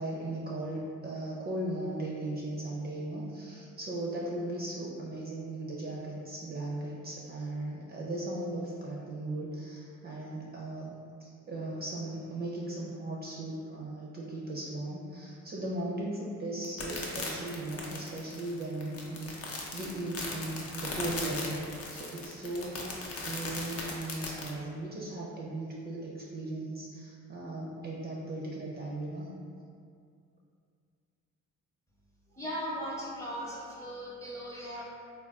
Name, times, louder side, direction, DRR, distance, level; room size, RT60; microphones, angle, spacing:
voice 1, 0.0-29.3, right 1 dB, 30° right, -4 dB, 0.4 m, -37 dB
sound 1, 16.6-24.5, left 3 dB, 50° left, 0.6 m, -38 dB
voice 2, 32.3-34.8, equal, 10° left, -6 dB, 0.7 m, -38 dB
3.3 x 2.3 x 2.3 m, 2.3 s
cardioid pair, 90°, 30 cm